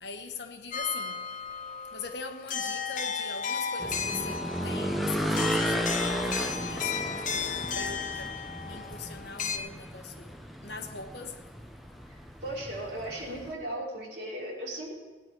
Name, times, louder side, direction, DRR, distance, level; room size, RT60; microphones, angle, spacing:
voice 1, 0.0-1.1 1.9-4.4 4.6-7.2 7.8-8.3 8.6-10.3 10.6-11.3, left 5 dB, 70° left, 6 dB, 1.2 m, -41 dB
sound 1, 0.7-9.6, left 6 dB, 45° left, 0.8 m, -34 dB
sound 2, 3.8-13.5, equal, ahead, 0.7 m, -34 dB
voice 2, 12.1-14.9, right 1 dB, 65° right, -3 dB, 3.3 m, -37 dB
17.0 x 9.6 x 4.7 m, 1.3 s
head